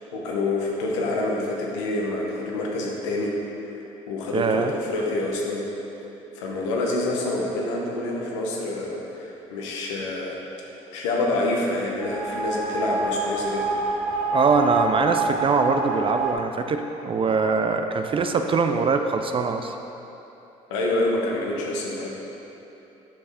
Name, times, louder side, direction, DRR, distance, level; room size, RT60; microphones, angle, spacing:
voice 1, 0.1-3.4 3.7-3.8 4.1-5.7 6.3-10.4 10.9-13.7 20.7-22.1, left 2 dB, 90° left, -2 dB, 0.9 m, -27 dB
voice 2, 4.3-4.7 14.3-19.8, right 4 dB, 35° right, 6 dB, 0.4 m, -22 dB
sound 1, 12.0-16.3, right 2 dB, 75° right, 1.0 m, -27 dB
6.8 x 5.4 x 3.5 m, 3.0 s
hypercardioid pair, 60°, 15 cm